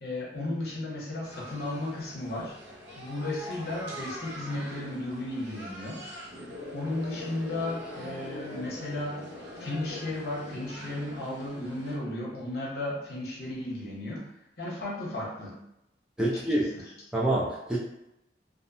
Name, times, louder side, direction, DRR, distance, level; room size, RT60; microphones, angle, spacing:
voice 1, 0.0-2.6 2.9-6.0 6.7-9.2 9.6-14.3 14.6-15.6 16.2-16.9, left 1 dB, 55° left, -4 dB, 0.8 m, -34 dB
sound 1, 1.2-12.0, left 1 dB, 70° right, 0.6 m, -42 dB
voice 2, 16.2-16.7 17.1-17.8, right 1 dB, 5° right, -6 dB, 0.3 m, -26 dB
2.6 x 2.1 x 2.6 m, 0.85 s
head